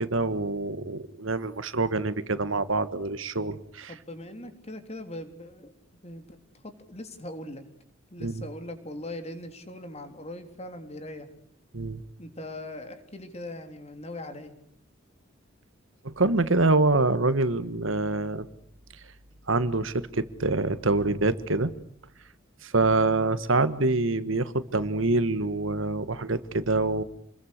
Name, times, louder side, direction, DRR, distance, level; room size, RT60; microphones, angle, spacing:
voice 1, 0.0-3.9 8.2-8.5 11.7-12.0 16.0-18.4 19.5-21.7 22.6-27.0, right 2 dB, 80° right, 13 dB, 1.6 m, -25 dB
voice 2, 3.9-7.6 8.1-11.3 12.2-14.5, left 1 dB, 35° left, 7 dB, 3.6 m, -40 dB
28.5 x 22.0 x 6.7 m, 0.68 s
head